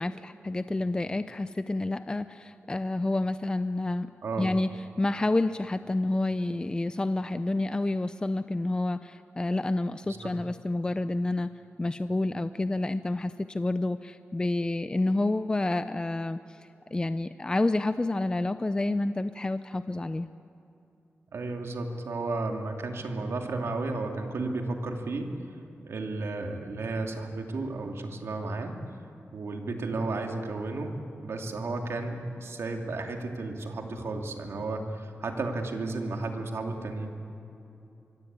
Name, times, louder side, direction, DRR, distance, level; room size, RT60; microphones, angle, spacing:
voice 1, 0.0-4.1 4.4-11.5 11.8-20.3, left 2 dB, 20° left, 11 dB, 0.5 m, -29 dB
voice 2, 4.2-4.5 10.1-10.3 21.3-25.3 25.8-28.8 29.3-37.3, right 3 dB, 75° right, 3 dB, 2.7 m, -33 dB
25.0 x 22.5 x 9.0 m, 2.8 s
wide cardioid pair, 125°, 4 cm